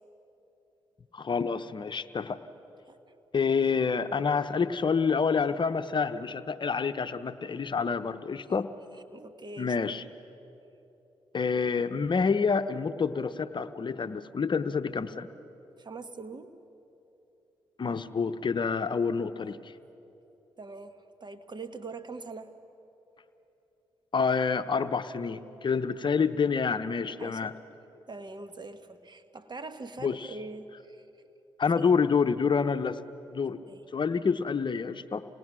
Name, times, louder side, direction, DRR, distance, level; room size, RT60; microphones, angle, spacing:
voice 1, 1.1-2.4 3.3-8.7 9.6-10.0 11.3-15.3 17.8-19.7 24.1-27.5 30.0-30.3 31.6-33.0 33.3-33.6 33.9-35.3, left 5 dB, 45° left, 11 dB, 0.8 m, -28 dB
voice 2, 8.9-9.7 15.8-16.5 19.4-19.7 20.6-22.5 27.2-27.6 28.1-31.1 31.7-31.8 33.7-33.8, right 3 dB, 40° right, 9 dB, 1.5 m, -43 dB
27.5 x 19.5 x 6.2 m, 3.0 s
hypercardioid pair, 40°, 11 cm